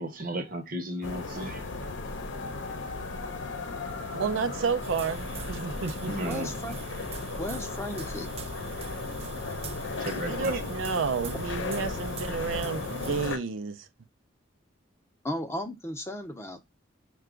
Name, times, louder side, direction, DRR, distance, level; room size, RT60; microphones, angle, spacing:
voice 1, 0.0-1.6 6.1-6.5 10.0-10.7, right 1 dB, 45° right, 0.9 m, -34 dB
sound 1, 1.0-13.4, left 3 dB, 75° left, 0.7 m, -36 dB
voice 2, 4.1-6.4 10.3-13.9, right 5 dB, 90° right, 0.5 m, -31 dB
sound 2, 4.8-13.3, right 3 dB, 30° right, 0.4 m, -41 dB
voice 3, 6.2-6.8 7.4-8.3 15.2-16.6, left 1 dB, 15° left, 0.6 m, -35 dB
5.6 x 2.3 x 3.7 m
head